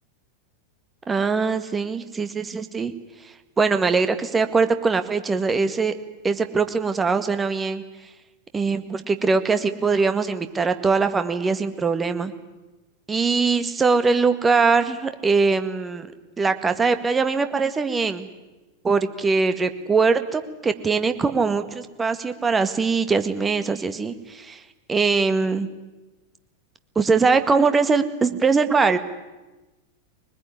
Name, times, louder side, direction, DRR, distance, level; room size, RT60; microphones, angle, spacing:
voice 1, 1.1-2.9 3.2-5.9 6.2-8.1 8.5-12.3 13.1-16.1 16.4-18.3 18.8-25.7 27.0-29.0, right 4 dB, 15° right, 9 dB, 1.8 m, -22 dB
23.0 x 20.5 x 9.8 m, 1.1 s
figure-of-eight pair, 90°, 0 cm